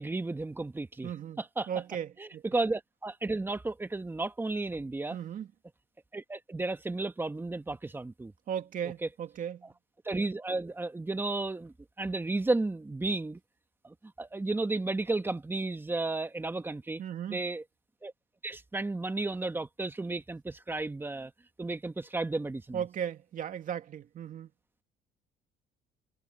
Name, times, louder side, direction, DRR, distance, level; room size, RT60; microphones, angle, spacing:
voice 1, 0.0-1.1 1.6-1.7 2.2-5.2 6.1-8.3 10.0-13.4 13.8-17.0 17.3-17.6 18.0-18.1 18.4-21.3 21.6-22.8, right 2 dB, 15° right, 1.3 m, -33 dB
voice 2, 1.0-1.4 1.7-2.4 5.1-5.5 8.5-9.7 17.0-17.4 22.7-24.5, right 9 dB, 50° right, 2.3 m, -36 dB
cardioid pair, 110°, 17 cm